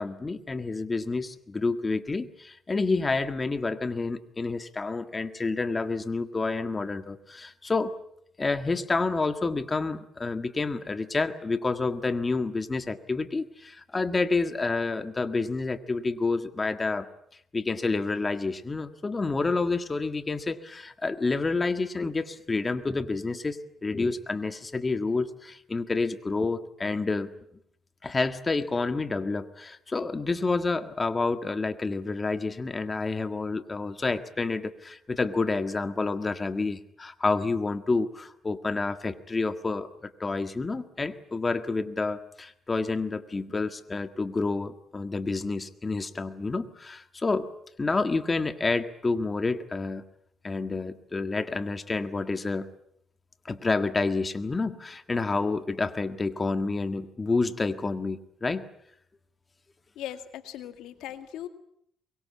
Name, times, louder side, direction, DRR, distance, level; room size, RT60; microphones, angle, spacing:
voice 1, 0.0-8.0 8.4-17.1 17.5-27.3 28.0-47.5 47.8-50.0 50.4-52.7 53.4-58.6, left 3 dB, 25° left, 9 dB, 1.7 m, -29 dB
voice 2, 60.0-61.5, left 11 dB, 90° left, 9 dB, 2.0 m, -39 dB
24.0 x 23.0 x 8.6 m, 0.72 s
cardioid pair, 90°, 0 cm